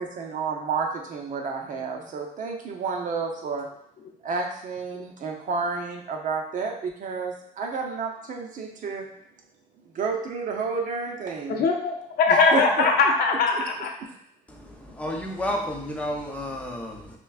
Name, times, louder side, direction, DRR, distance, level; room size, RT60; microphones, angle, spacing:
voice 1, 0.0-3.7 4.2-9.1 9.9-11.6 12.3-12.6, right 5 dB, 50° right, 1 dB, 0.7 m, -30 dB
voice 2, 11.5-13.9, left 4 dB, 60° left, 2 dB, 0.7 m, -21 dB
voice 3, 14.5-17.2, equal, 10° left, -1 dB, 0.7 m, -31 dB
6.0 x 2.2 x 2.4 m, 0.73 s
cardioid pair, 110°, 17 cm